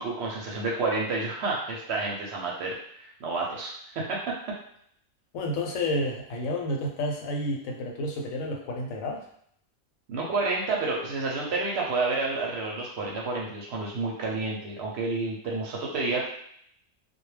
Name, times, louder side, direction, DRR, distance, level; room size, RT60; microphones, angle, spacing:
voice 1, 0.0-2.7 3.0-4.2 10.1-16.3, right 3 dB, 65° right, -2 dB, 0.7 m, -29 dB
voice 2, 5.3-9.3, left 1 dB, 85° left, 1 dB, 1.0 m, -30 dB
2.2 x 2.1 x 3.1 m, 0.67 s
omnidirectional pair, 1.4 m